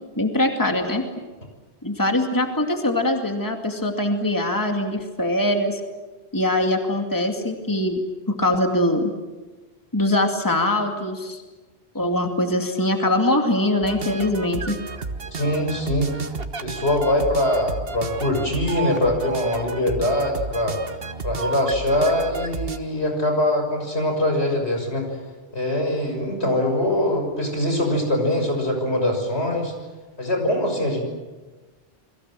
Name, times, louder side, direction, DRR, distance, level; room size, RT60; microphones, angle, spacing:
voice 1, 0.2-1.0 1.8-5.8 6.3-8.0 8.3-9.1 9.9-11.4 11.9-14.8, left 1 dB, 20° left, 3 dB, 2.4 m, -22 dB
sound 1, 13.8-22.8, right 4 dB, 65° right, 1.6 m, -32 dB
voice 2, 15.3-16.3 16.6-20.8 21.2-25.2 25.5-29.7 30.2-31.0, left 1 dB, 85° left, 3 dB, 6.7 m, -23 dB
29.5 x 22.5 x 7.6 m, 1.2 s
omnidirectional pair, 1.1 m